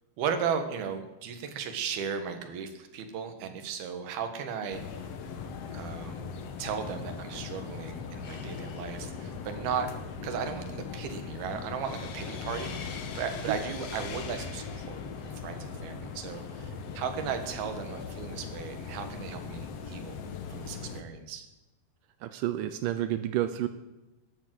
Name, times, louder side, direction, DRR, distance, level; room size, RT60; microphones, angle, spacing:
voice 1, 0.2-4.8 5.7-6.2 6.6-10.0 10.2-20.2 20.5-21.5, right 7 dB, 70° right, 7 dB, 3.3 m, -36 dB
sound 1, 4.7-21.0, left 5 dB, 75° left, 1.4 m, -39 dB
voice 2, 22.2-23.7, right 13 dB, 85° right, 11 dB, 1.9 m, -30 dB
14.0 x 10.5 x 7.7 m, 1.0 s
omnidirectional pair, 4.8 m